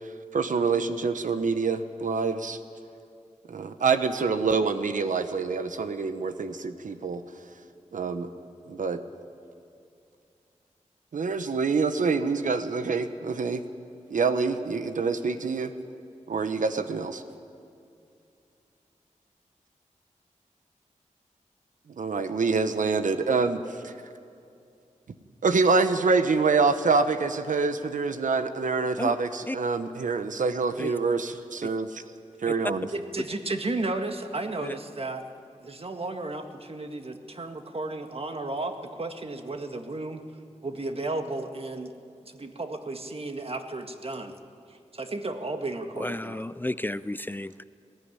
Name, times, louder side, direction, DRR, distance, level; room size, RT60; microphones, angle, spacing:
voice 1, 0.3-2.6 3.5-7.2 7.9-8.3 8.7-9.0 11.1-13.6 14.1-15.7 16.3-17.2 22.0-23.9 25.4-32.0 32.4-32.9, right 4 dB, 85° right, 9 dB, 0.9 m, -26 dB
voice 2, 32.9-35.2 35.6-40.2 40.6-41.9 42.2-44.3 44.7-46.4, right 2 dB, 50° right, 6 dB, 1.7 m, -33 dB
voice 3, 46.0-47.6, left 1 dB, 15° left, 15 dB, 0.4 m, -32 dB
19.5 x 15.0 x 9.7 m, 2.5 s
cardioid pair, 55°, 13 cm